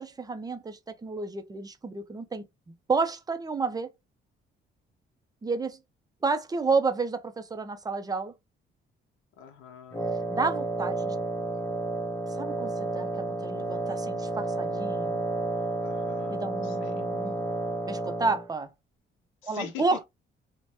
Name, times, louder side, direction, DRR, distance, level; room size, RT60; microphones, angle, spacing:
voice 1, 0.0-2.4 2.9-3.9 5.4-5.8 6.2-8.3 10.3-11.2 12.3-15.2 16.3-17.4 17.9-18.7 19.4-20.0, right 4 dB, 20° right, 0.5 m, -30 dB
voice 2, 9.4-10.1 15.8-17.0 19.4-20.0, left 8 dB, 80° left, 0.6 m, -43 dB
Wind instrument woodwind instrument, 9.9-18.5, right 2 dB, 15° left, 0.8 m, -31 dB
3.1 x 2.1 x 2.6 m
cardioid pair, 90°, 20 cm